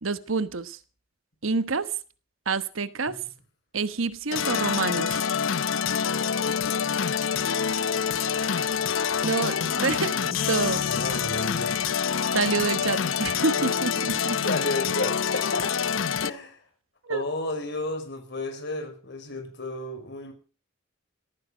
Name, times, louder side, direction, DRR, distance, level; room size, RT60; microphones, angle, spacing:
voice 1, 0.0-0.8 1.4-1.9 2.5-3.2 3.7-5.2 9.2-10.9 12.3-14.4 17.1-17.2, right 4 dB, 85° right, 1.2 m, -27 dB
sound 1, 4.3-16.3, left 7 dB, 75° left, 0.7 m, -26 dB
voice 2, 10.9-11.8 14.4-15.8 16.2-16.6 17.1-20.3, left 2 dB, 60° left, 5.2 m, -32 dB
18.0 x 14.5 x 5.0 m
head